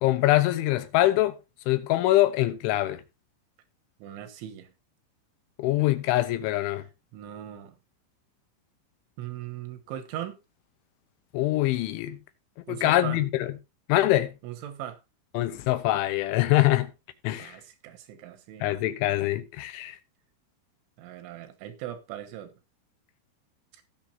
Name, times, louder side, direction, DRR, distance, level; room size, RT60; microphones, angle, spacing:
voice 1, 0.0-1.4 1.7-3.0 5.6-6.8 11.3-12.2 12.7-13.5 13.9-14.3 15.4-16.9 17.2-17.6 18.6-20.0, left 16 dB, 90° left, 3.4 m, -24 dB
voice 2, 4.0-4.7 7.1-7.8 9.2-10.4 12.7-13.2 14.4-15.0 17.4-18.8 21.0-22.6 23.7-23.8, right 11 dB, 85° right, 3.7 m, -39 dB
18.5 x 6.7 x 2.8 m
omnidirectional pair, 5.3 m